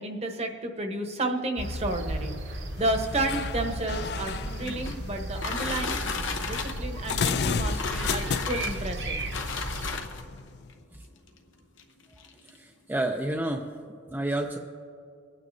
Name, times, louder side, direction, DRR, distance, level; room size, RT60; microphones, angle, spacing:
voice 1, 0.0-6.0 6.5-9.2, right 2 dB, 35° right, 4 dB, 1.0 m, -31 dB
sound 1, 1.6-9.9, right 1 dB, 60° right, 1.1 m, -35 dB
sound 2, 2.8-10.8, left 6 dB, 55° left, 0.3 m, -35 dB
sound 3, 4.3-10.4 11.3-11.4 11.8-11.9 12.2-12.6, left 4 dB, 85° left, 0.9 m, -34 dB
voice 2, 12.4-13.7 14.1-14.6, right 1 dB, 10° right, 1 dB, 0.4 m, -30 dB
25.0 x 9.3 x 2.7 m, 2.5 s
head